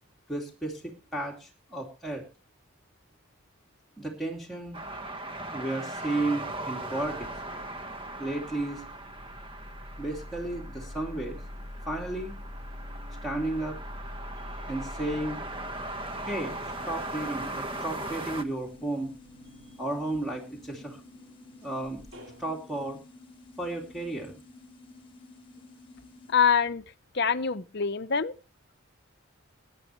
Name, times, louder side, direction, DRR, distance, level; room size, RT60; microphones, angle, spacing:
voice 1, 0.3-2.2 4.0-4.8 5.5-7.3 8.2-8.8 10.0-11.4 11.9-12.4 13.2-13.8 14.7-15.4 16.2-16.6 16.8-19.1 19.8-21.0 21.6-22.0 22.4-23.0 23.6-24.3, right 2 dB, ahead, 2.6 m, -33 dB
sound 1, 4.7-18.4, right 2 dB, 25° right, 1.2 m, -39 dB
sound 2, 5.4-6.2 6.5-22.4, left 1 dB, 65° right, 4.7 m, -46 dB
sound 3, 16.7-26.3, left 2 dB, 25° left, 1.7 m, -52 dB
voice 2, 26.3-26.8 27.1-28.3, left 6 dB, 50° left, 0.7 m, -25 dB
22.5 x 10.0 x 3.1 m
head